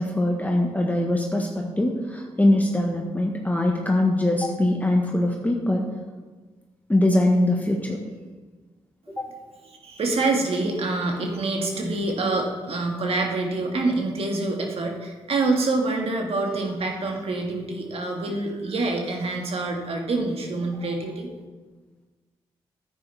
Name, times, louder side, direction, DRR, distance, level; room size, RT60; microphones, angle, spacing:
voice 1, 0.0-5.9 6.9-8.0 9.2-9.3, left 1 dB, 15° left, 0 dB, 1.4 m, -22 dB
voice 2, 9.8-21.3, right 2 dB, 60° right, 2 dB, 1.9 m, -26 dB
10.0 x 9.0 x 3.5 m, 1.3 s
supercardioid pair, 45°, 11 cm